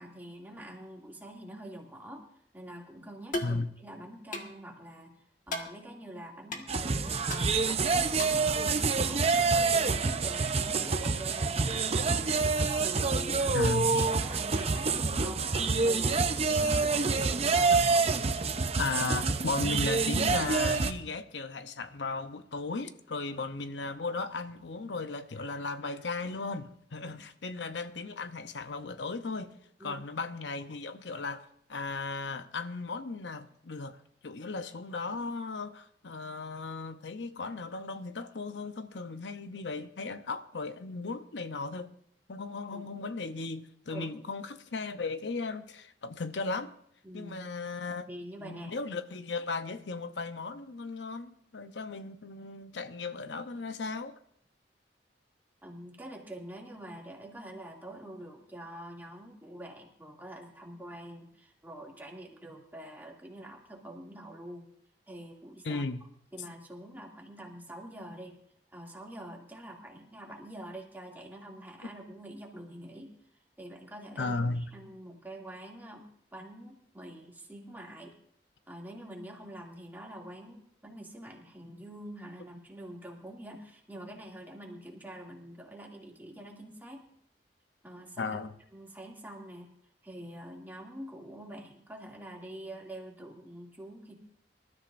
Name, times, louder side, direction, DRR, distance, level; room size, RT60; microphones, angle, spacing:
voice 1, 0.0-2.3 2.5-5.1 5.5-12.3 12.8-17.9 27.0-27.2 29.8-30.0 42.7-42.9 43.9-44.2 47.0-47.4 47.9-48.7 55.6-64.7 65.1-65.8 66.3-68.3 68.7-78.2 78.7-87.1 87.8-88.4 88.7-89.7 90.0-94.2, right 1 dB, 10° right, 2.4 m, -46 dB
sound 1, 3.3-3.6 4.3-4.5 5.5-5.7 6.5-6.6 7.3-7.4 8.2-8.4, left 2 dB, 45° left, 1.6 m, -35 dB
sound 2, 6.7-20.9, right 4 dB, 35° right, 0.7 m, -27 dB
voice 2, 13.5-14.1 18.8-29.5 29.8-31.4 31.7-34.0 34.2-41.9 42.3-46.7 47.1-48.1 48.4-54.2 65.6-66.0 74.2-74.7 88.2-88.5, left 3 dB, 80° left, 0.7 m, -36 dB
25.5 x 13.0 x 2.6 m
head